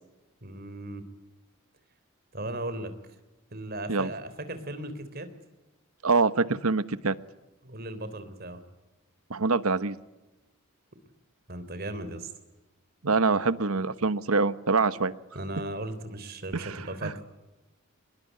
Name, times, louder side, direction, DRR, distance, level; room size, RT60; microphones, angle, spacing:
voice 1, 0.4-1.0 2.3-2.9 3.5-5.3 7.6-8.6 11.5-12.3 15.3-17.2, right 1 dB, 45° right, 11 dB, 3.5 m, -36 dB
voice 2, 6.0-7.1 9.3-9.9 13.0-15.1 16.5-17.1, right 4 dB, 85° right, 14 dB, 1.2 m, -25 dB
24.5 x 22.0 x 9.4 m, 1.1 s
head